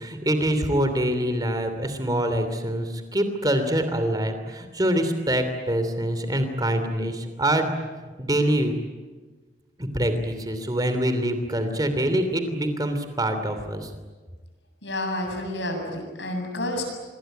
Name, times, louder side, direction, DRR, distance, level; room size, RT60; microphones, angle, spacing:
voice 1, 0.0-7.7 8.2-8.7 9.8-13.9, right 1 dB, 20° right, 8 dB, 3.1 m, -25 dB
voice 2, 14.8-16.8, left 1 dB, 80° left, 3 dB, 7.9 m, -29 dB
27.0 x 22.0 x 9.3 m, 1.3 s
head